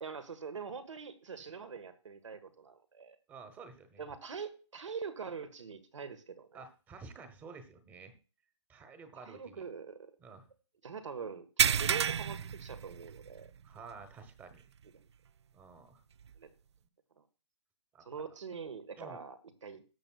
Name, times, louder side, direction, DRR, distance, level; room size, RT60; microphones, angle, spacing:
voice 1, 0.0-3.2 4.0-6.6 9.2-10.1 10.8-13.5 14.9-15.0 16.4-16.5 18.0-19.8, right 6 dB, 85° right, 10 dB, 1.5 m, -44 dB
voice 2, 3.3-4.1 6.5-8.2 8.7-9.6 10.2-10.5 13.6-14.6 15.5-16.0 17.9-18.0 19.0-19.2, right 4 dB, 10° right, 9 dB, 1.0 m, -51 dB
sound 1, 11.6-13.5 13.8-14.0 14.5-14.6 16.3-16.4, right 8 dB, 65° right, 0.5 m, -30 dB
18.5 x 6.8 x 2.3 m, 0.35 s
hypercardioid pair, 155°, 15 cm